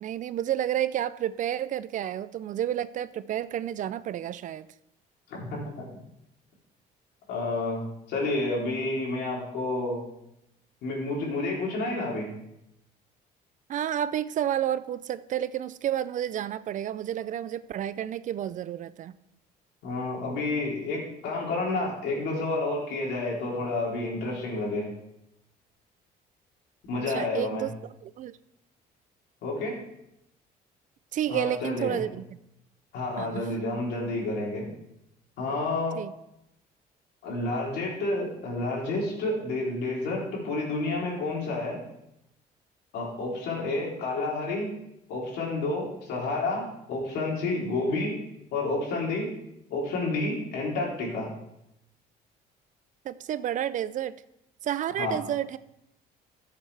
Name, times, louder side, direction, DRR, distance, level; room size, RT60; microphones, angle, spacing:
voice 1, 0.0-4.7 13.7-19.1 26.9-27.7 28.0-28.3 31.1-32.2 33.2-33.5 36.0-36.1 53.0-54.1 54.6-55.6, right 11 dB, 50° right, 16 dB, 0.4 m, -30 dB
voice 2, 5.3-5.9 7.3-10.0 10.8-12.3 19.8-24.9 26.9-27.7 29.4-29.8 31.3-32.0 32.9-34.7 35.4-36.0 37.2-41.8 42.9-44.7 45.1-48.2 48.5-49.3 49.7-51.3 55.0-55.2, left 2 dB, 80° left, -3 dB, 3.4 m, -30 dB
14.0 x 7.3 x 3.3 m, 0.82 s
cardioid pair, 110°, 17 cm